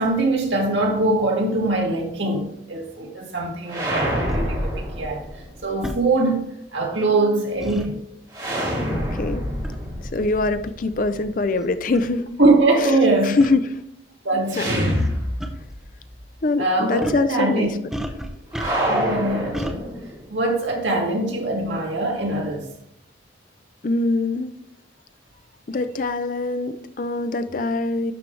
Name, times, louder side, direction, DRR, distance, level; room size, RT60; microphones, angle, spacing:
voice 1, 0.0-5.3 5.6-8.0 12.4-13.4 14.2-14.9 16.6-17.7 18.9-20.0 20.3-22.7, right 2 dB, 80° right, 2.0 m, -22 dB
sound 1, 3.7-5.6 8.3-11.3 14.5-15.9 16.2-16.3 18.5-20.3, equal, 25° right, 3.0 m, -26 dB
sound 2, 4.3-4.4 5.8-6.0 7.6-7.9 9.6-9.9 10.7-10.8 11.6-11.7 11.9-12.1 13.4-13.5 14.9-15.1 15.4-15.5 17.0-17.3 17.9-19.0 19.5-19.8, equal, ahead, 0.6 m, -31 dB
voice 2, 8.9-9.4 10.1-12.3 12.8-12.9 13.2-13.8 14.6-14.7 16.4-17.8 23.8-24.5 25.7-28.1, left 3 dB, 45° left, 0.5 m, -23 dB
11.5 x 4.6 x 3.3 m
head